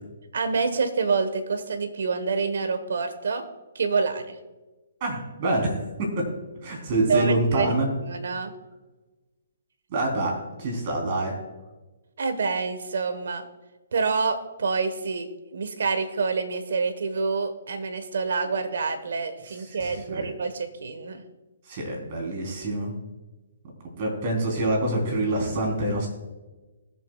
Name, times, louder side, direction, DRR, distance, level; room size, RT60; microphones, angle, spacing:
voice 1, 0.3-3.5 3.7-4.4 7.1-7.7 8.0-8.5 12.2-13.4 13.9-21.2, right 4 dB, 75° right, 8 dB, 1.4 m, -27 dB
voice 2, 5.0-6.3 6.6-7.9 9.9-11.3 19.7-20.3 21.7-22.9 24.0-26.1, right 1 dB, 40° right, 0 dB, 3.9 m, -26 dB
20.0 x 7.6 x 2.4 m, 1.2 s
hypercardioid pair, 150°, 0 cm